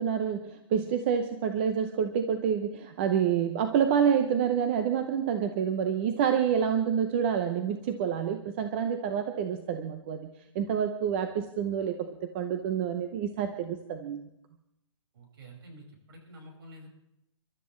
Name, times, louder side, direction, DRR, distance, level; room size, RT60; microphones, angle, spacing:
voice 1, 0.0-10.3 10.5-14.3, right 8 dB, 20° right, 7 dB, 0.6 m, -28 dB
voice 2, 15.1-16.9, right 1 dB, 45° right, 1 dB, 5.6 m, -49 dB
29.5 x 12.5 x 3.2 m, 0.85 s
hypercardioid pair, 165°, 17 cm